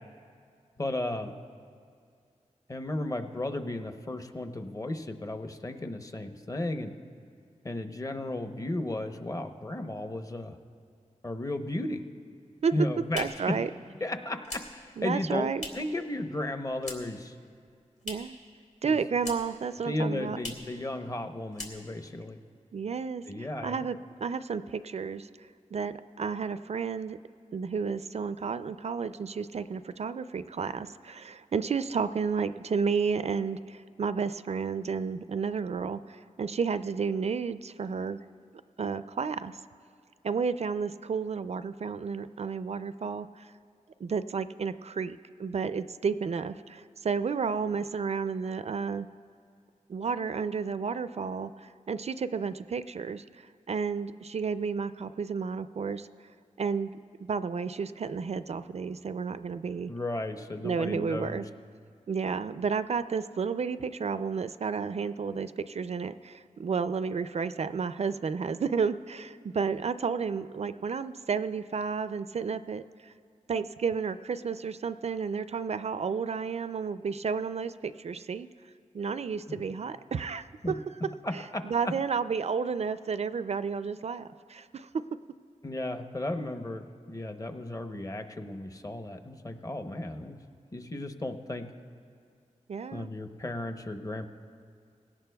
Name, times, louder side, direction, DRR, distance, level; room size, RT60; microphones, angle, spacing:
voice 1, 0.8-1.3 2.7-6.9 7.6-10.6 11.2-12.0 12.7-13.6 14.0-17.3 18.8-19.0 19.8-22.4 23.3-23.8 59.9-61.4 79.5-79.6 80.6-80.7 81.2-81.9 85.6-90.4 90.7-91.7 92.9-94.3, left 1 dB, 25° left, 6 dB, 0.8 m, -34 dB
sound 1, 12.6-16.0 16.3-17.3 17.5-18.5 18.7-19.7 19.9-20.0 20.3-20.8 21.1-21.3 21.5-22.2, left 2 dB, 65° left, 2.4 m, -43 dB
voice 2, 13.1-13.7 15.0-15.6 18.0-18.4 18.8-20.4 22.7-25.3 25.7-27.2 27.5-38.2 38.8-39.6 40.2-43.5 44.0-49.1 49.9-56.1 56.6-56.9 57.2-59.9 60.6-61.4 62.1-73.1 73.5-78.5 78.9-80.8 81.3-85.0 92.7-93.1, right 5 dB, 55° right, 13 dB, 0.4 m, -32 dB
21.0 x 17.5 x 2.3 m, 2.2 s
wide cardioid pair, 85°, 13 cm